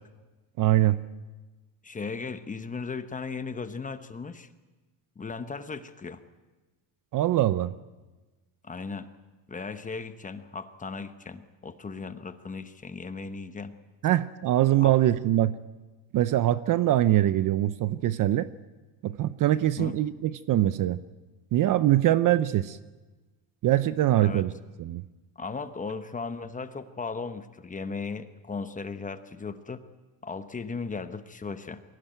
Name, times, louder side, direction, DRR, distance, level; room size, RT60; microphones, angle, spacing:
voice 1, 0.6-1.0 7.1-7.7 14.0-15.5 16.1-18.5 19.0-21.0 21.5-22.8 23.6-24.5 24.8-25.0, right 13 dB, 45° right, 15 dB, 0.6 m, -23 dB
voice 2, 1.8-4.5 5.2-6.2 8.6-9.1 9.5-13.8 14.8-14.9 19.8-20.0 24.2-24.5 25.4-29.8 30.2-31.8, left 4 dB, 15° left, 10 dB, 1.0 m, -36 dB
22.5 x 16.5 x 9.1 m, 1.2 s
cardioid pair, 140°, 47 cm